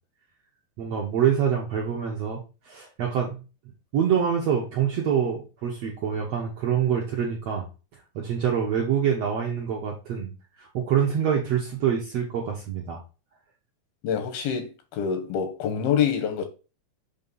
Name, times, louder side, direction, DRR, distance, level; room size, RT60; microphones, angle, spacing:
voice 1, 0.8-2.4 2.6-3.4 3.9-7.7 8.1-10.3 10.6-13.0, right 8 dB, 75° right, 1.5 m, -25 dB
voice 2, 14.0-16.5, left 8 dB, 90° left, 2.9 m, -26 dB
6.5 x 2.7 x 5.3 m
omnidirectional pair, 4.1 m